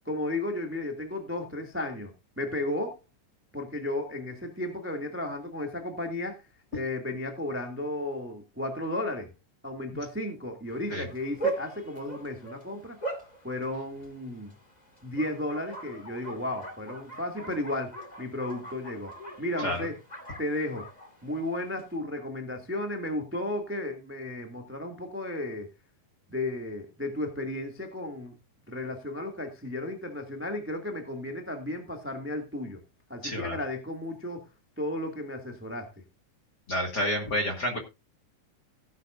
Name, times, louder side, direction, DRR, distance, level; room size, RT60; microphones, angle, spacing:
voice 1, 0.0-3.0 3.5-6.4 6.7-9.3 9.6-13.0 13.4-14.5 15.0-20.0 20.4-20.9 21.2-25.7 26.3-28.3 28.7-32.8 33.1-34.4 34.8-35.9, left 1 dB, 5° right, 1.2 m, -34 dB
Bark, 10.7-22.0, right 3 dB, 20° left, 1.4 m, -40 dB
voice 2, 33.2-33.6 36.7-37.8, equal, 35° left, 2.0 m, -29 dB
16.5 x 9.7 x 2.6 m
omnidirectional pair, 4.1 m